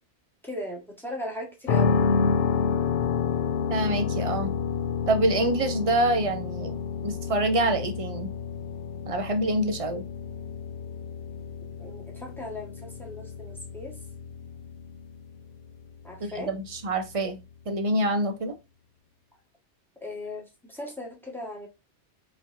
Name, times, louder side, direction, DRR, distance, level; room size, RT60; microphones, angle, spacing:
voice 1, 0.4-2.0 11.8-14.0 16.0-16.5 20.0-21.7, left 1 dB, ahead, 1.3 m, -38 dB
sound 1, 1.7-17.5, left 6 dB, 65° left, 0.7 m, -30 dB
voice 2, 3.7-4.5 5.1-6.8 7.0-8.3 9.1-10.0 16.2-17.4 17.7-18.6, right 1 dB, 35° right, 0.6 m, -26 dB
5.0 x 3.2 x 2.6 m
omnidirectional pair, 1.2 m